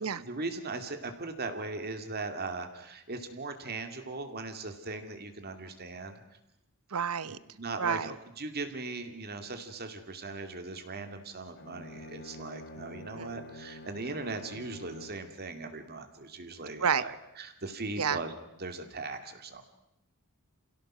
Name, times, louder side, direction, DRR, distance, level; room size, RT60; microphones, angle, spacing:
voice 1, 0.0-6.2 7.2-19.7, right 3 dB, 45° right, 7 dB, 2.5 m, -39 dB
voice 2, 6.9-7.4 7.8-8.1 13.1-13.3 16.8-17.0 18.0-18.2, right 6 dB, 90° right, 16 dB, 0.9 m, -29 dB
Bowed string instrument, 11.5-15.3, left 1 dB, 50° left, 1.1 m, -47 dB
28.0 x 17.0 x 6.2 m, 0.89 s
head